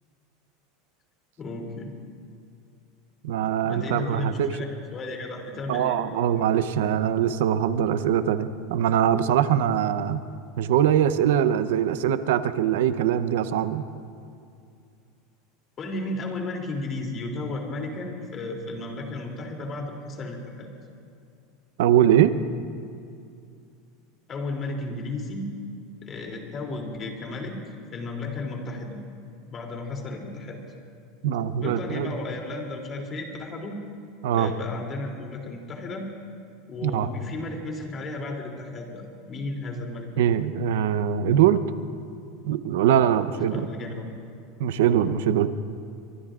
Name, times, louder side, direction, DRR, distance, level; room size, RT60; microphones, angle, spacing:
voice 1, 1.4-1.9 3.6-6.0 15.8-20.7 24.3-25.5 26.0-27.6 27.9-29.0 29.5-30.6 31.6-33.7 34.3-36.1 36.7-40.1 43.5-44.1, left 2 dB, 30° left, 1 dB, 2.9 m, -34 dB
voice 2, 3.2-4.5 5.7-10.2 10.6-13.8 21.8-22.3 31.2-32.1 34.2-34.5 36.8-37.1 40.2-41.6 42.4-43.7 44.6-45.5, right 10 dB, 80° right, 12 dB, 0.7 m, -22 dB
24.0 x 24.0 x 2.5 m, 2.4 s
supercardioid pair, 145°, 0 cm